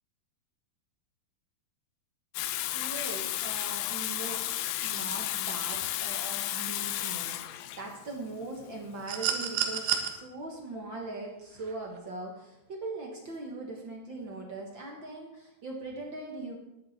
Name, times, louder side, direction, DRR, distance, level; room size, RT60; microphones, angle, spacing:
Water tap faucet / Sink (filling or washing), 2.3-10.0, left 14 dB, 85° left, 2.4 m, -33 dB
voice 1, 2.7-4.5 4.8-16.6, right 2 dB, 45° right, 0 dB, 1.6 m, -40 dB
sound 1, 9.1-10.1 11.6-11.7, right 10 dB, 80° right, 3.0 m, -29 dB
11.5 x 11.0 x 4.3 m, 0.93 s
omnidirectional pair, 4.1 m